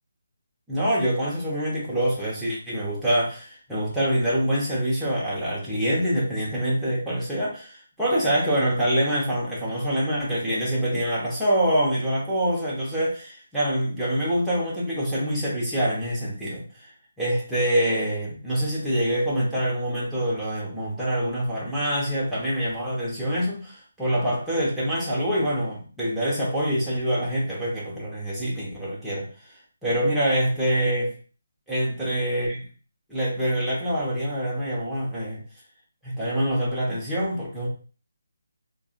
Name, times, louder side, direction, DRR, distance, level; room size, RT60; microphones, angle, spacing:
voice 1, 0.7-7.7 8.0-16.9 17.2-29.3 29.8-31.1 31.7-32.6 33.1-35.4 36.0-37.7, equal, 5° right, -8 dB, 0.9 m, -25 dB
3.5 x 2.2 x 2.4 m, 0.38 s
figure-of-eight pair, 160°, 0 cm